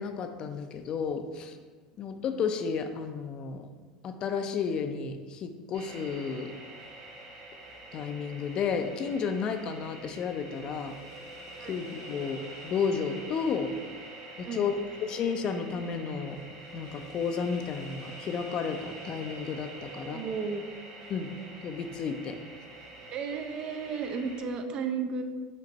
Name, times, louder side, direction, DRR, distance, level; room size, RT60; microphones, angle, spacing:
voice 1, 0.0-1.6 2.0-3.7 4.0-6.5 7.9-11.0 11.7-13.7 14.4-14.7 15.0-16.4 16.7-20.2 21.1-21.3 21.6-22.4, left 6 dB, 45° left, 7 dB, 0.4 m, -32 dB
sound 1, 5.7-24.4, right 2 dB, 70° right, 1.2 m, -46 dB
voice 2, 19.8-20.6 23.1-25.2, right 5 dB, 45° right, 7 dB, 0.5 m, -34 dB
5.2 x 2.5 x 4.0 m, 1.4 s
supercardioid pair, 95°, 2 cm